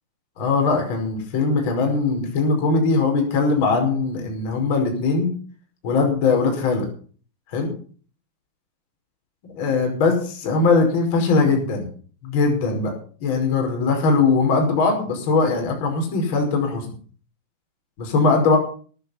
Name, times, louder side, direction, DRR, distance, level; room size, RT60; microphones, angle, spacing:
voice 1, 0.4-5.3 5.8-6.8 7.5-7.7 9.5-11.9 12.2-12.9 13.2-16.9 18.0-18.6, left 4 dB, 50° left, 2 dB, 5.3 m, -20 dB
18.5 x 8.4 x 5.8 m, 0.43 s
figure-of-eight pair, 90°, 0 cm